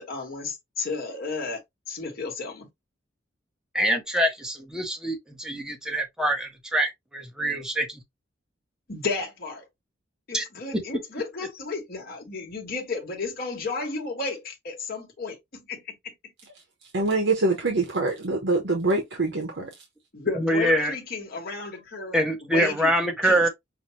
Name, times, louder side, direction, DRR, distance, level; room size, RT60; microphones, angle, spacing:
voice 1, 0.0-1.6 1.9-2.7 8.9-9.7 10.3-16.1 19.6-19.7 20.1-22.9 23.2-23.4, left 4 dB, 55° left, 1.2 m, -33 dB
voice 2, 3.7-8.0 10.3-10.4 20.4-20.9 22.1-23.5, right 1 dB, 5° right, 1.0 m, -25 dB
voice 3, 16.9-19.7, right 3 dB, 65° right, 1.0 m, -24 dB
5.8 x 2.2 x 3.1 m
head